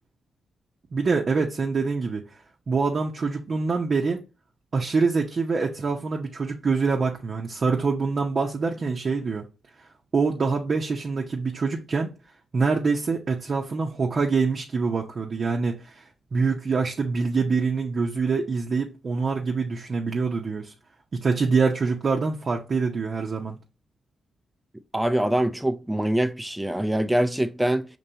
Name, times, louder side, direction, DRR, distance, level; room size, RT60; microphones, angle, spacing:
voice 1, 0.9-2.4 2.7-4.2 4.7-9.4 9.8-9.9 10.1-12.1 12.5-20.7 21.1-23.6, right 4 dB, 50° right, 0.7 m, -25 dB
voice 2, 24.9-27.8, right 1 dB, 10° right, 0.4 m, -24 dB
5.4 x 3.0 x 2.8 m
supercardioid pair, 45°, 0 cm